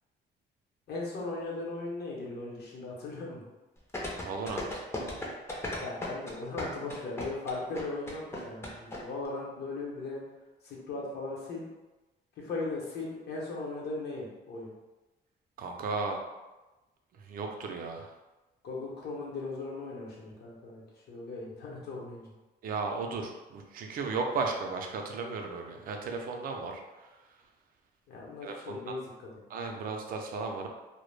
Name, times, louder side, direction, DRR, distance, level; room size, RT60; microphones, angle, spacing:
voice 1, 0.9-3.4 5.8-10.2 10.6-11.7 12.4-14.7 18.6-22.3 28.1-29.4, left 3 dB, 65° left, -3 dB, 0.7 m, -38 dB
sound 1, 3.9-9.0 9.2-9.3, left 2 dB, 15° left, 0.4 m, -36 dB
voice 2, 4.2-4.8 15.6-16.2 17.3-18.1 22.6-26.8 28.4-28.8 29.5-30.7, right 4 dB, 50° right, 3 dB, 0.4 m, -35 dB
2.1 x 2.0 x 3.1 m, 1.1 s
cardioid pair, 160°, 19 cm